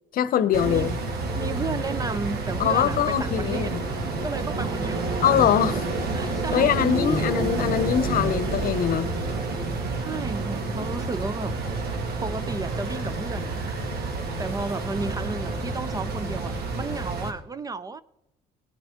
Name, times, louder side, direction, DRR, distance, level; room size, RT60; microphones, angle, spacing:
voice 1, 0.1-1.0 2.6-3.8 5.2-5.8 6.5-9.1, left 9 dB, 60° left, 0.8 m, -23 dB
sound 1, 0.5-17.3, right 3 dB, 70° right, 2.2 m, -29 dB
voice 2, 1.3-3.8 4.2-5.2 6.1-7.3 10.0-11.6 12.2-13.6 14.4-18.0, right 3 dB, 20° right, 0.5 m, -33 dB
18.0 x 9.1 x 3.7 m
cardioid pair, 110°, 17 cm